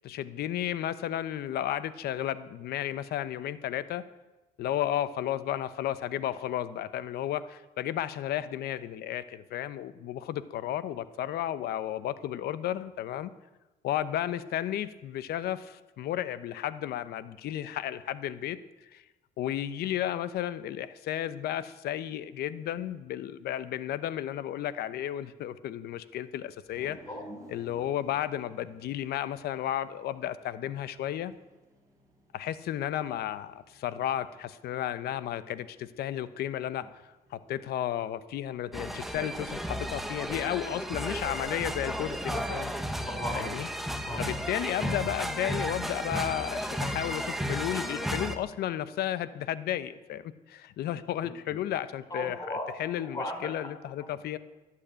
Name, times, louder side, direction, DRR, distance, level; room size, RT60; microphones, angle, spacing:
voice 1, 0.0-4.0 4.6-13.3 13.8-18.6 18.9-19.0 19.4-27.0 27.5-31.3 32.3-36.9 37.3-42.7 43.4-43.7 44.2-52.4 52.8-54.4, left 11 dB, 70° left, 14 dB, 0.9 m, -33 dB
sound 1, 26.6-39.4, right 2 dB, 20° right, 6.3 m, -57 dB
voice 2, 27.1-27.4 43.1-43.6 44.0-44.2 44.8-45.1 51.2-51.6 52.1-52.7 53.0-53.7, left 1 dB, 20° left, 3 dB, 4.4 m, -36 dB
sound 2, 38.7-48.4, equal, ahead, 1.4 m, -33 dB
12.0 x 11.5 x 9.0 m, 1.1 s
cardioid pair, 110°, 17 cm